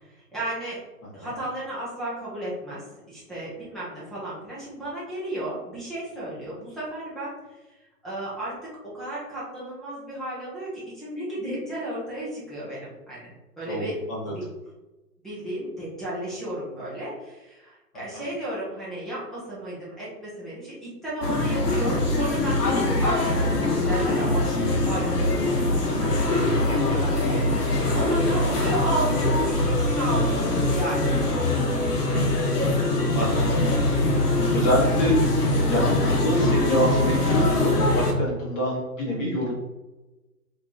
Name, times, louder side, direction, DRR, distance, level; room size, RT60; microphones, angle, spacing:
voice 1, 0.3-0.8 1.1-7.3 8.0-13.3 13.6-14.0 14.3-14.4 15.2-31.2, right 1 dB, ahead, -9 dB, 0.6 m, -34 dB
voice 2, 13.7-14.3 18.1-18.2 26.7-27.0 32.1-32.4 32.7-32.9 33.1-33.4 33.8-34.0 34.5-35.2 35.7-39.5, equal, 25° left, -4 dB, 1.4 m, -27 dB
sound 1, 21.2-38.1, left 2 dB, 75° left, 1.1 m, -23 dB
4.3 x 3.0 x 2.6 m, 1.1 s
hypercardioid pair, 135°, 47 cm